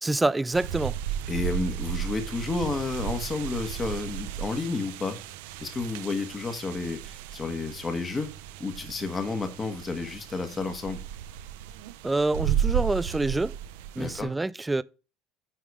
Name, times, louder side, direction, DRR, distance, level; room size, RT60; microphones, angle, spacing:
voice 1, 0.0-1.0 12.0-13.6 14.0-14.8, right 2 dB, 10° right, 0.3 m, -26 dB
sound 1, 0.5-14.2, right 10 dB, 90° right, 0.6 m, -34 dB
voice 2, 1.3-5.2 5.6-8.3 8.6-11.0 14.0-14.3, left 3 dB, 20° left, 1.4 m, -31 dB
10.0 x 3.7 x 4.8 m
cardioid pair, 130°, 0 cm